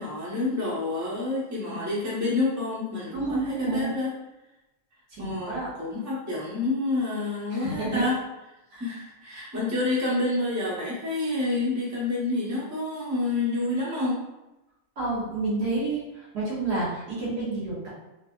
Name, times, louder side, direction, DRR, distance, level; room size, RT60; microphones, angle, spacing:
voice 1, 0.0-4.1 5.2-8.2 8.8-14.2, left 2 dB, 15° right, -7 dB, 0.7 m, -28 dB
voice 2, 3.1-3.9 5.1-5.7 7.5-8.0 8.7-8.8 15.0-17.9, right 3 dB, 85° right, -10 dB, 1.8 m, -29 dB
4.0 x 2.7 x 2.3 m, 0.97 s
omnidirectional pair, 1.7 m